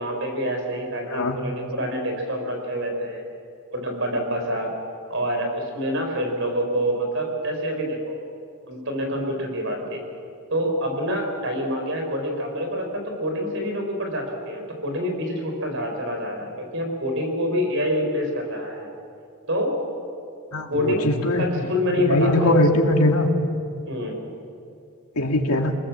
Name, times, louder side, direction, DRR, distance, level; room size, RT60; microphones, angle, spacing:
voice 1, 0.0-3.2 3.7-4.7 5.1-8.2 8.7-10.0 10.5-18.9 19.5-19.7 20.7-21.1 21.4-22.6 23.8-24.2, equal, 55° right, 3 dB, 5.1 m, -26 dB
voice 2, 20.5-21.5 22.0-23.3 25.2-25.8, left 1 dB, 85° left, 3 dB, 2.3 m, -20 dB
28.5 x 19.0 x 7.5 m, 2.4 s
head